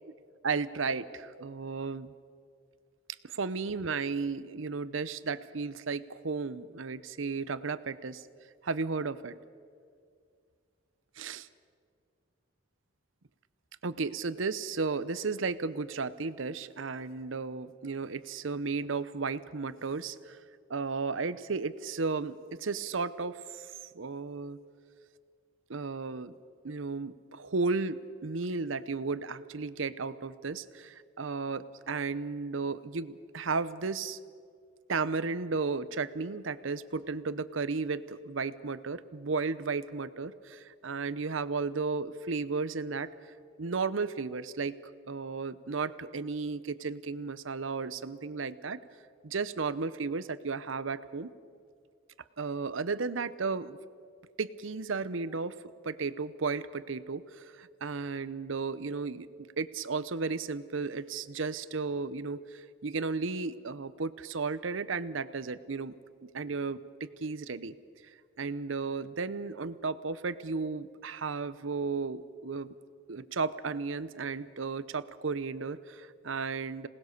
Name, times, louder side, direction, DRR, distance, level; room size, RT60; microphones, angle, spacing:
voice 1, 0.4-2.1 3.2-8.2 8.6-9.3 11.2-11.5 13.8-20.4 20.7-24.6 25.7-26.3 26.6-34.2 34.9-43.1 43.6-44.8 45.1-48.8 49.2-51.3 52.4-53.8 54.4-55.5 55.8-65.9 66.2-67.7 68.4-72.7 73.1-76.9, right 4 dB, 75° right, 15 dB, 0.8 m, -34 dB
27.0 x 19.0 x 6.6 m, 2.2 s
head